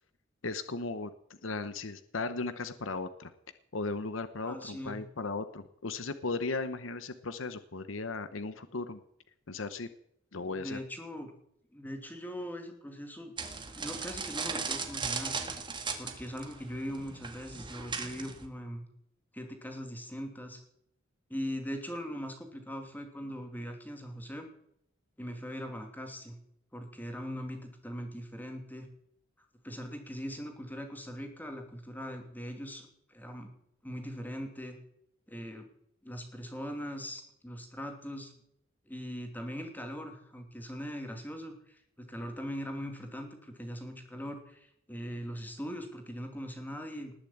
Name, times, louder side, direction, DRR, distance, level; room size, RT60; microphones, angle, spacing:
voice 1, 0.4-3.3 3.7-9.0 9.5-9.9 10.3-10.8, left 3 dB, 70° left, 12 dB, 0.9 m, -36 dB
voice 2, 4.5-5.0 10.5-11.3 11.7-13.3 13.8-15.4 16.0-18.8 19.3-20.6 21.3-24.5 25.2-26.4 26.7-28.9 29.6-33.5 33.8-34.8 35.3-35.7 36.0-38.3 38.9-47.1, equal, 10° left, 4 dB, 2.7 m, -40 dB
sound 1, 13.4-18.5, right 5 dB, 25° right, 1.8 m, -37 dB
19.5 x 7.1 x 8.6 m, 0.72 s
head